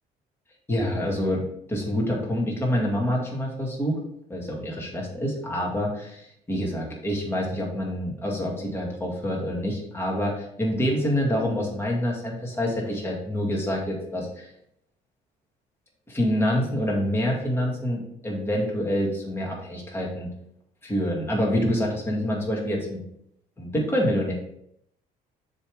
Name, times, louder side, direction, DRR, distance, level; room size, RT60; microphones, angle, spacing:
voice 1, 0.7-1.4 1.7-4.0 4.3-14.5 16.1-20.3 20.8-23.0 23.6-24.3, equal, 15° left, -2 dB, 2.1 m, -26 dB
7.3 x 3.4 x 4.8 m, 0.73 s
cardioid pair, 110°, 17 cm